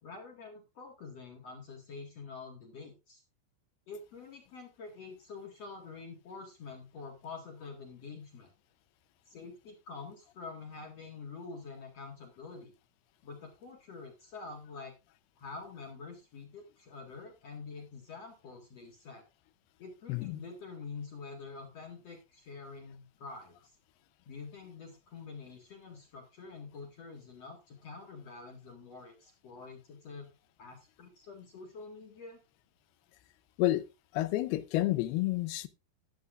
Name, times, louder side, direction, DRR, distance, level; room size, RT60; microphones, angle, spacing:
voice 1, 0.0-3.2 3.9-8.5 9.3-12.7 13.2-14.9 15.4-19.2 19.8-23.7 24.3-30.3 30.6-32.4, left 4 dB, 50° left, 2.5 m, -47 dB
voice 2, 20.1-20.4 33.6-33.8 34.1-35.7, left 16 dB, 85° left, 2.7 m, -29 dB
14.0 x 11.5 x 2.5 m
omnidirectional pair, 4.4 m